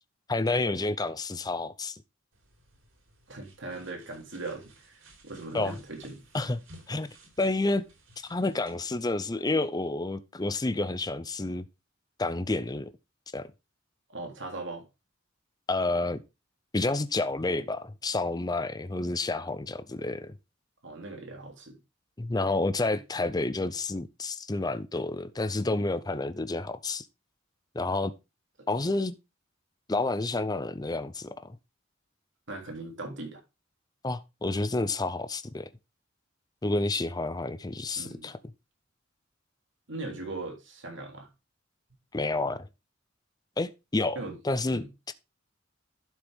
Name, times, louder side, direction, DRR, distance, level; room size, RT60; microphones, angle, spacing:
voice 1, 0.3-2.0 5.5-5.8 6.3-6.6 6.9-7.1 7.4-7.8 8.2-11.7 12.2-12.9 13.3-13.5 15.7-16.2 16.7-20.4 22.2-27.1 27.7-28.1 28.7-29.2 29.9-31.6 34.0-35.7 36.6-38.4 42.1-42.7 43.6-45.1, left 2 dB, 20° left, 0.6 m, -29 dB
sound 1, 2.3-8.8, right 2 dB, 85° right, 4.2 m, -57 dB
voice 2, 3.3-6.2 14.1-14.9 20.8-21.8 28.6-28.7 32.5-33.4 38.0-38.3 39.9-41.3 44.1-44.4 44.7-44.9, right 2 dB, 65° right, 3.2 m, -39 dB
11.5 x 6.4 x 3.5 m
head